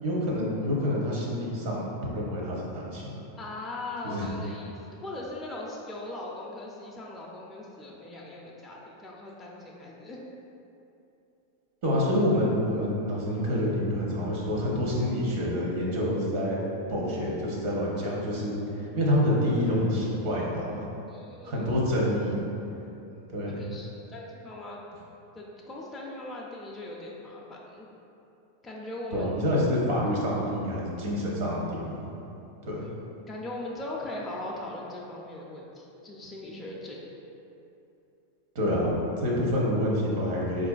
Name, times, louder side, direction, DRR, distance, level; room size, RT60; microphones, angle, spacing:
voice 1, 0.0-3.1 4.0-4.3 11.8-16.6 16.9-18.5 18.9-20.9 21.4-22.5 23.3-23.6 29.1-31.9 32.7-32.8 38.5-40.7, equal, 60° right, -4 dB, 0.8 m, -27 dB
voice 2, 3.4-4.7 5.0-10.2 18.3-18.5 21.1-21.8 23.5-24.8 25.3-27.9 28.6-29.4 32.8-32.9 33.3-37.1, left 2 dB, 15° left, -4 dB, 0.4 m, -39 dB
4.3 x 2.5 x 2.3 m, 2.8 s
hypercardioid pair, 115°, 0 cm